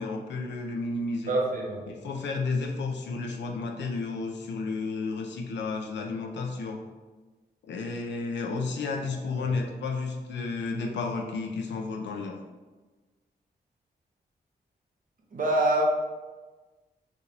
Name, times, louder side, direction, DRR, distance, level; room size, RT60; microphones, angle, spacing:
voice 1, 0.0-1.3 1.9-6.8 7.6-12.4, left 3 dB, 85° left, 2 dB, 0.5 m, -32 dB
voice 2, 1.3-1.8 9.4-9.5 15.3-15.8, right 1 dB, 50° right, -1 dB, 1.0 m, -25 dB
4.9 x 2.6 x 3.3 m, 1.3 s
cardioid pair, 75°, 18 cm